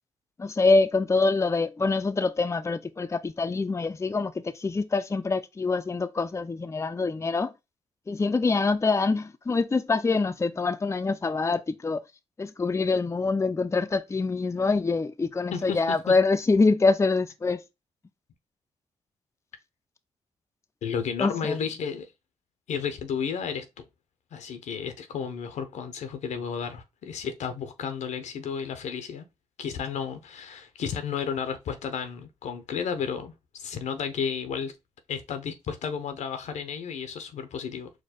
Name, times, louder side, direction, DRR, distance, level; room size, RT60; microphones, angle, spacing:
voice 1, 0.4-7.5 8.1-12.0 12.4-17.6 21.2-21.7, left 3 dB, 25° left, 0.5 m, -25 dB
voice 2, 20.8-22.1 22.7-23.9 24.3-29.3 29.6-33.3 33.6-34.7 35.1-37.9, left 7 dB, 85° left, 0.7 m, -32 dB
4.6 x 2.2 x 4.1 m
cardioid pair, 55°, 12 cm